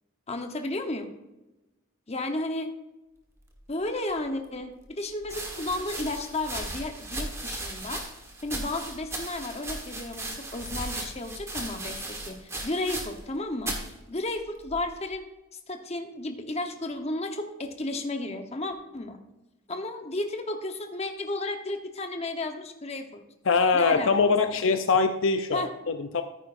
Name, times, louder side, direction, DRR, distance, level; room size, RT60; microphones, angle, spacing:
voice 1, 0.3-1.1 2.1-2.7 3.7-8.0 8.4-13.8 14.1-15.3 15.7-19.2 19.7-23.2 23.7-24.6 25.5-25.7, left 2 dB, 30° left, 5 dB, 1.0 m, -33 dB
sound 1, 4.2-4.3 5.2-13.3 13.6-13.9 14.7-15.1, right 2 dB, 15° right, 1.4 m, -36 dB
voice 2, 23.5-26.2, left 4 dB, 65° left, 7 dB, 0.6 m, -23 dB
13.5 x 9.3 x 2.6 m, 1.0 s
head